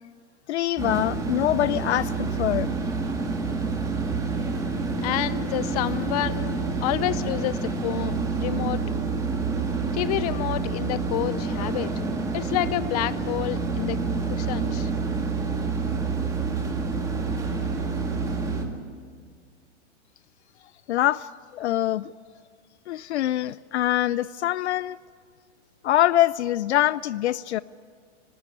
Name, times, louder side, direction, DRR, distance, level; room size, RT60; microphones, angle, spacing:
voice 1, 0.5-2.8 20.9-22.1 22.9-25.0 25.8-27.6, left 13 dB, 65° left, 18 dB, 0.5 m, -24 dB
sound 1, 0.8-18.6, right 4 dB, 10° right, 1.8 m, -28 dB
voice 2, 5.0-8.8 9.9-11.9 12.3-14.0 14.3-14.9, left 14 dB, 35° left, 16 dB, 0.7 m, -29 dB
27.0 x 12.5 x 9.9 m, 2.1 s
hypercardioid pair, 155°, 36 cm